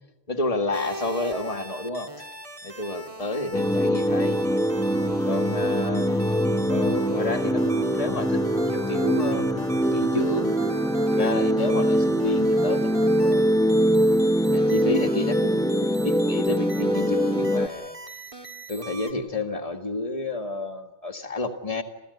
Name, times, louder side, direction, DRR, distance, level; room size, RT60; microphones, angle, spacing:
voice 1, 0.3-2.3 2.6-4.4 5.3-6.1 6.7-8.4 8.7-9.5 9.9-10.6 11.1-13.7 14.5-17.9 18.7-21.8, left 2 dB, 35° left, 6 dB, 2.1 m, -30 dB
sound 1, 0.7-19.1, right 1 dB, 30° right, 2.2 m, -41 dB
sound 2, 3.5-17.7, equal, 5° left, 0.9 m, -23 dB
29.0 x 15.0 x 9.8 m, 1.0 s
omnidirectional pair, 1.1 m